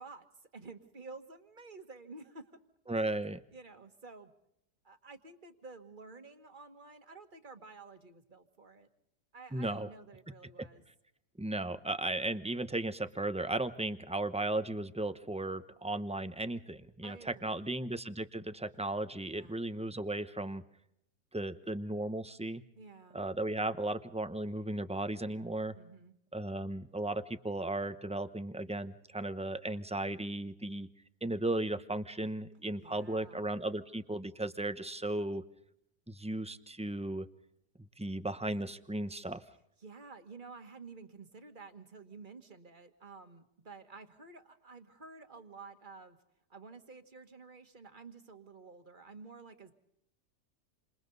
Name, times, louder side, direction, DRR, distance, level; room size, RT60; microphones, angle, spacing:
voice 1, 0.0-2.5 2.9-3.2 3.5-4.3 4.8-8.9 9.3-10.8 17.0-17.7 19.3-19.6 22.8-23.2 25.7-26.1 32.8-33.4 39.8-46.2 46.5-49.7, right 4 dB, 30° right, 6 dB, 1.9 m, -51 dB
voice 2, 2.9-3.4 9.5-9.9 11.4-20.6 21.3-22.6 23.1-25.8 26.3-30.9 31.2-35.4 36.1-37.3 38.0-39.4, right 2 dB, 5° right, 11 dB, 0.7 m, -35 dB
29.0 x 27.0 x 4.0 m, 0.76 s
omnidirectional pair, 1.7 m